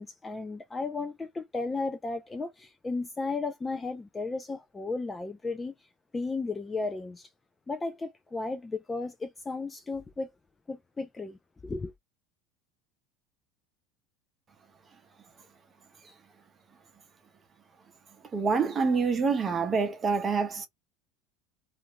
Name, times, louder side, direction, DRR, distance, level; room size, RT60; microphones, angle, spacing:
voice 1, 0.0-5.7 6.1-7.3 7.7-10.3 10.7-11.9, left 3 dB, 15° left, 0.3 m, -34 dB
voice 2, 18.3-20.7, right 5 dB, 25° right, 0.8 m, -26 dB
2.5 x 2.2 x 2.8 m
supercardioid pair, 140°, 0 cm